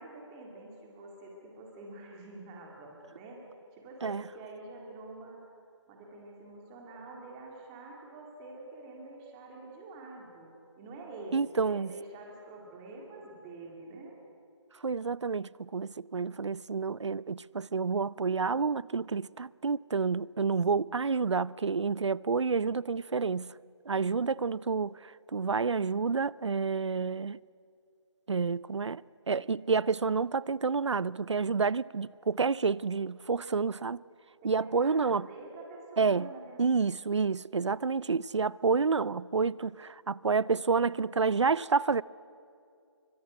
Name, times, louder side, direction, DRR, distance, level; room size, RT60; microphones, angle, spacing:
voice 1, 0.0-3.5 3.7-5.4 5.9-14.2 34.4-36.8, right 2 dB, 10° right, 2.1 m, -47 dB
voice 2, 11.3-11.9 14.8-23.6 23.9-27.4 28.3-29.0 29.3-34.0 34.4-35.3 36.0-36.3 36.6-42.0, right 5 dB, 70° right, 0.6 m, -29 dB
25.5 x 24.0 x 9.4 m
figure-of-eight pair, 175°, 15 cm